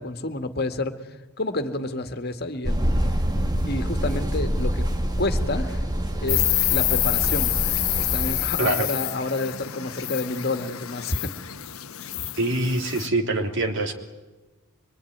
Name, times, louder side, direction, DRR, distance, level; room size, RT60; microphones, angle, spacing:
voice 1, 0.0-2.9 3.7-4.9 5.2-5.8 6.2-7.5 8.0-11.3, left 2 dB, 50° left, 7 dB, 1.9 m, -29 dB
sound 1, 2.6-8.6, equal, 20° right, 1.6 m, -26 dB
Insect, 6.3-13.1, left 16 dB, 80° left, 1.1 m, -27 dB
voice 2, 12.4-13.9, right 2 dB, 60° right, 4 dB, 3.3 m, -24 dB
24.5 x 24.5 x 9.5 m, 1.1 s
head